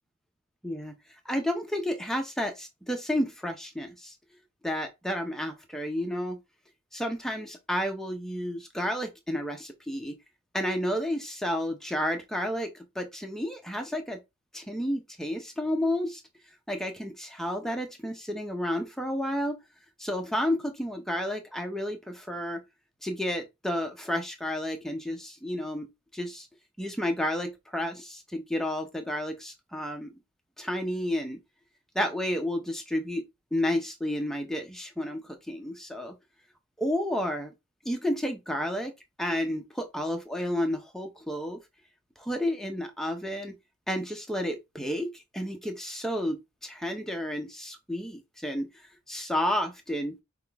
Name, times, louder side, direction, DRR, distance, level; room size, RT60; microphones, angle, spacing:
voice 1, 0.6-0.9 1.2-4.1 4.6-6.4 6.9-10.2 10.5-14.2 14.5-16.2 16.7-19.6 20.0-22.6 23.0-25.9 26.1-26.5 26.8-30.1 30.6-31.4 31.9-36.2 36.8-37.5 37.8-38.9 39.2-41.6 42.2-43.6 43.9-48.7 49.1-50.2, left 1 dB, ahead, 0.6 m, -31 dB
5.8 x 2.4 x 3.4 m
head